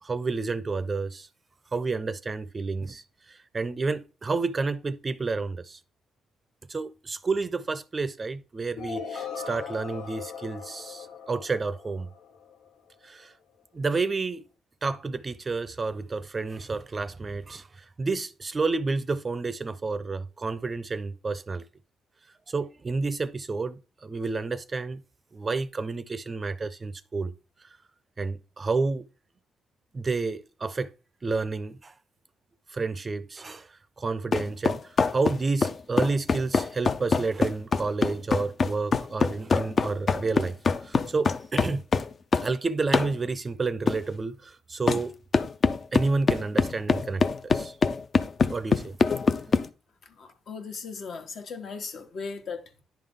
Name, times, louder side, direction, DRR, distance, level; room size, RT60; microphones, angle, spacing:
voice 1, 0.0-1.3 1.7-3.0 3.3-5.8 6.7-12.1 13.0-13.3 13.7-14.4 14.8-21.6 22.5-25.0 25.3-27.3 28.2-29.1 29.9-30.9 31.2-31.9 32.7-33.7 34.0-40.6 40.8-41.8 42.4-45.1 45.9-47.8 48.5-48.9, right 3 dB, 30° right, 0.5 m, -30 dB
sound 1, 8.8-12.7, left 6 dB, 85° left, 0.8 m, -39 dB
sound 2, 34.3-42.5 42.9-43.1 43.9-44.0 44.9-45.0 45.3-49.7, left 4 dB, 40° left, 0.5 m, -24 dB
voice 2, 50.2-52.8, left 5 dB, 60° left, 1.3 m, -38 dB
10.5 x 3.8 x 3.6 m
cardioid pair, 90°, 0 cm